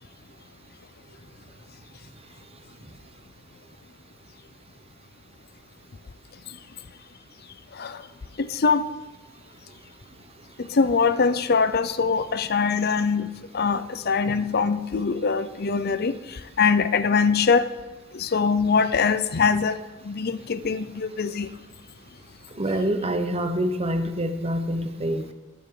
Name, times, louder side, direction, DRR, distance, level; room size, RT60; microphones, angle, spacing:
voice 1, 8.4-8.8 10.6-16.1 16.6-17.7 18.1-19.8 20.0-21.5, left 5 dB, 50° left, 13 dB, 0.6 m, -23 dB
voice 2, 22.6-25.3, right 1 dB, 30° right, 8 dB, 0.9 m, -26 dB
21.5 x 7.9 x 3.8 m, 1.1 s
head